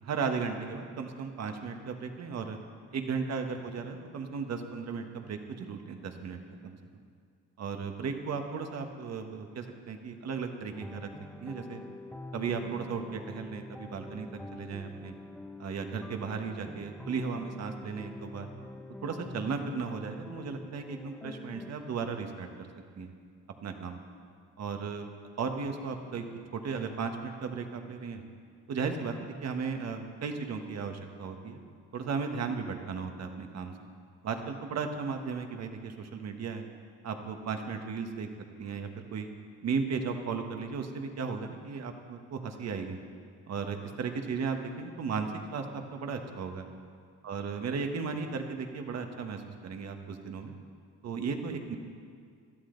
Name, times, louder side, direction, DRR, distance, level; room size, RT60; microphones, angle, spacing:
voice 1, 0.0-2.6 2.9-6.8 7.6-11.1 11.4-11.8 12.3-15.2 15.6-18.5 19.0-22.7 22.9-23.1 23.6-24.0 24.6-25.1 25.4-26.2 26.5-28.2 28.7-31.6 31.9-33.7 34.2-36.7 37.0-38.3 38.6-39.3 39.6-43.0 43.5-46.7 47.2-50.5 51.0-51.8, right 5 dB, 60° right, 5 dB, 1.5 m, -35 dB
sound 1, 10.7-21.7, left 2 dB, 5° left, 0.8 m, -45 dB
20.5 x 13.0 x 4.0 m, 2.2 s
cardioid pair, 90°, 30 cm